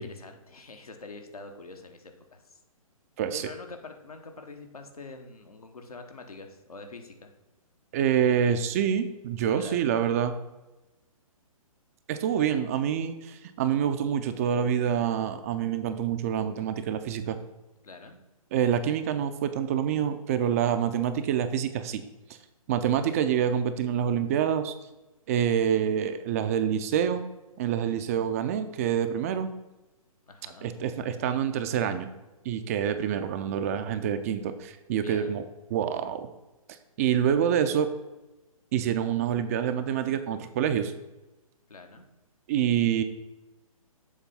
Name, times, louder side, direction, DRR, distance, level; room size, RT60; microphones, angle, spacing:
voice 1, 0.0-2.6 3.3-7.3 9.5-9.9 17.8-18.2 30.3-30.7 35.0-35.4 41.7-42.1, left 3 dB, 85° left, 5 dB, 1.0 m, -45 dB
voice 2, 3.2-3.5 7.9-10.3 12.1-17.4 18.5-22.0 22.7-24.7 25.3-27.2 27.6-29.5 30.6-32.1 32.4-35.5 35.7-36.3 37.0-37.9 38.7-40.9 42.5-43.0, right 9 dB, 25° right, 10 dB, 0.3 m, -26 dB
7.1 x 3.4 x 5.4 m, 1.1 s
figure-of-eight pair, 130°, 19 cm